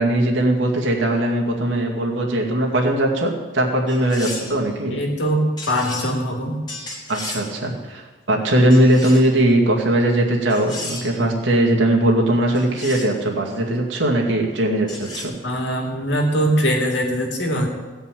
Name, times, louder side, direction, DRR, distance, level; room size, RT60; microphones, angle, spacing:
voice 1, 0.0-5.0 7.1-15.3, right 1 dB, 65° right, -1 dB, 2.3 m, -19 dB
sound 1, 3.9-4.6 5.6-6.1 6.7-7.5 8.7-9.4 10.5-11.2 12.5-13.2 14.9-15.2, left 2 dB, 20° left, 2.5 m, -34 dB
voice 2, 4.9-6.6 15.4-17.7, equal, 60° left, 2 dB, 2.4 m, -22 dB
16.0 x 5.6 x 9.3 m, 1.3 s
head